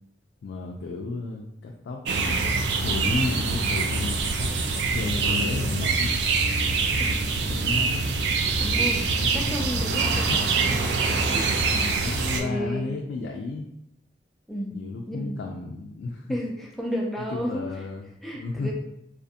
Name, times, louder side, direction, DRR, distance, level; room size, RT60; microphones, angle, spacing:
voice 1, 0.4-2.4 2.8-6.1 7.5-8.1 9.1-10.4 11.7-13.7 14.7-16.4 17.2-18.1 18.3-18.7, left 3 dB, 85° left, 0 dB, 0.3 m, -33 dB
sound 1, 2.1-12.4, right 4 dB, 80° right, 0.3 m, -24 dB
voice 2, 7.0-7.3 8.6-9.1 9.3-11.5 12.4-12.9 14.5-14.8 15.1-15.4 16.3-17.7 18.2-18.7, equal, ahead, -2 dB, 0.3 m, -32 dB
2.5 x 2.4 x 2.6 m, 0.79 s
head